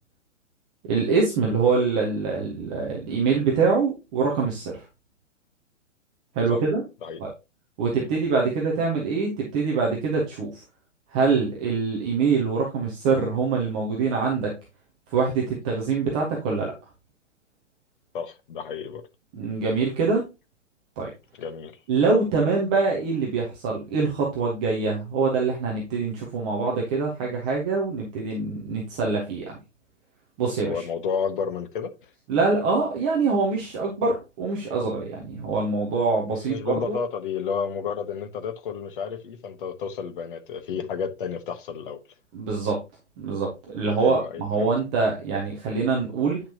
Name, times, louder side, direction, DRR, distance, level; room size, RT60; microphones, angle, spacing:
voice 1, 0.9-4.8 6.3-6.8 7.2-7.3 7.8-10.6 11.1-14.5 15.1-16.7 19.3-20.2 21.0-21.1 21.9-29.6 30.4-30.9 32.3-37.0 42.3-42.8 43.2-46.4, right 4 dB, 5° right, 0.4 m, -24 dB
voice 2, 18.1-19.0 21.4-21.7 30.6-32.1 36.3-42.0 44.0-44.7, left 6 dB, 45° left, 1.1 m, -31 dB
8.6 x 5.8 x 2.8 m
figure-of-eight pair, 120°, 37 cm